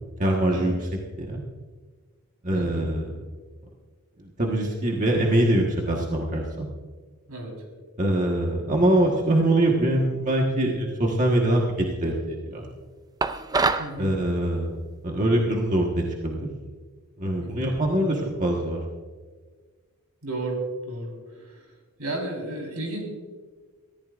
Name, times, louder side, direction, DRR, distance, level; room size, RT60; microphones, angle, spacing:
voice 1, 0.2-0.9 1.2-1.4 2.4-3.2 4.2-6.7 8.0-11.7 12.0-12.7 14.0-14.8 15.0-16.5 17.2-18.8, right 1 dB, 35° right, -1 dB, 1.4 m, -23 dB
voice 2, 2.5-2.8 7.3-7.5 13.8-14.1 17.4-17.7 20.2-20.6 20.9-21.1 21.3-21.7 22.0-23.0, right 2 dB, 80° right, 1 dB, 4.2 m, -33 dB
sound 1, 13.2-13.9, right 3 dB, 15° right, 0.4 m, -24 dB
23.5 x 14.5 x 2.5 m, 1.5 s
head